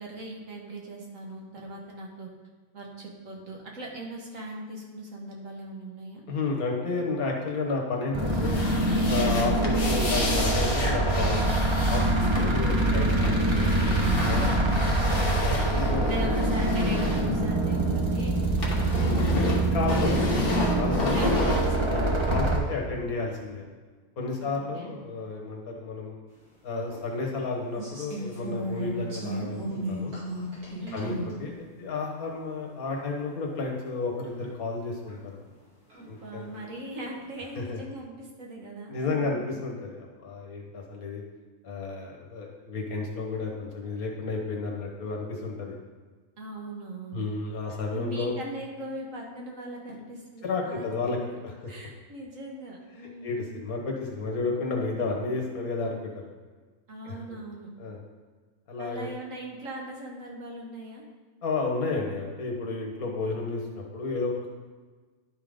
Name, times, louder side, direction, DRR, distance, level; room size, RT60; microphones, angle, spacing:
voice 1, 0.0-2.3 2.7-6.2 12.8-13.4 13.8-14.3 14.5-15.2 16.0-20.4 21.1-21.9 22.9-23.1 24.4-25.0 30.8-31.3 35.9-39.6 46.4-47.3 47.7-51.4 51.7-53.6 56.9-57.7 58.8-61.1, right 2 dB, 60° right, -1 dB, 1.8 m, -40 dB
voice 2, 6.3-8.6 9.1-11.6 11.9-13.4 14.2-14.5 15.1-16.3 18.9-19.0 19.7-21.6 21.9-23.6 24.2-26.2 26.6-30.2 30.9-35.4 36.1-36.5 37.6-37.8 38.9-41.2 41.6-45.8 47.1-48.3 50.4-51.2 53.2-56.2 57.0-57.4 57.8-58.0 58.7-59.1 61.4-64.5, left 3 dB, 75° left, 0 dB, 1.7 m, -32 dB
sound 1, 8.1-22.6, right 2 dB, 25° right, 0.8 m, -25 dB
sound 2, 8.2-18.0 18.3-22.4, left 3 dB, 40° left, 1.4 m, -32 dB
sound 3, 26.9-27.0 27.7-31.3 32.1-32.2 32.9-33.0 33.6-33.7 34.4-34.5 35.1-35.2 35.9-36.6 37.1-37.5, right 1 dB, 90° right, 2.9 m, -35 dB
11.0 x 3.8 x 5.1 m, 1.4 s
omnidirectional pair, 1.5 m